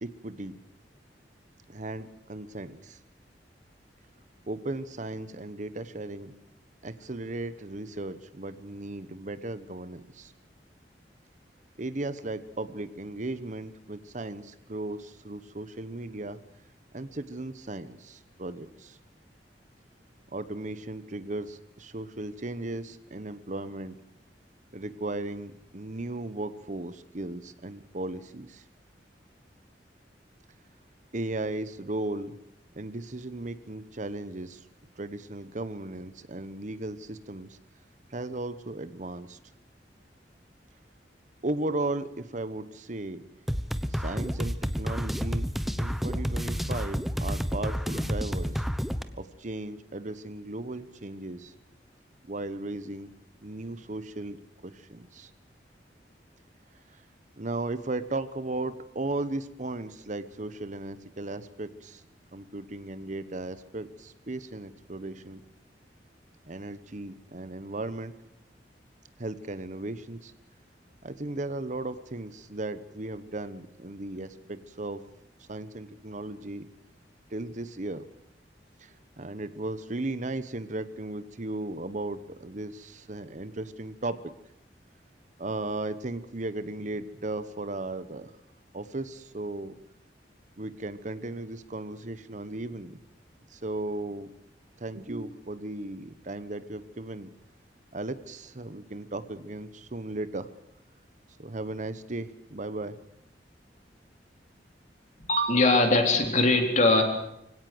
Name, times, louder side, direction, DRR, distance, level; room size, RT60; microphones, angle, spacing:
voice 1, 0.0-0.5 1.7-3.0 4.5-6.3 6.8-10.3 11.8-16.4 16.9-19.0 20.3-24.0 24.7-28.6 31.1-32.3 32.8-34.6 35.0-37.6 38.1-39.4 41.4-43.2 43.9-45.5 45.8-48.7 49.1-51.5 52.3-53.1 53.4-54.4 54.6-55.3 57.4-62.0 62.3-65.4 66.4-68.1 69.2-70.3 71.0-75.0 75.5-76.7 77.3-78.1 78.8-84.2 85.4-88.3 88.7-89.7 90.6-93.0 93.5-94.3 94.8-97.3 97.9-100.5 101.4-103.0, right 2 dB, 45° right, 13 dB, 1.1 m, -36 dB
sound 1, 43.5-49.0, equal, ahead, 1.0 m, -30 dB
voice 2, 105.3-107.0, left 2 dB, 45° left, 4 dB, 3.8 m, -21 dB
24.5 x 17.0 x 7.9 m, 0.79 s
head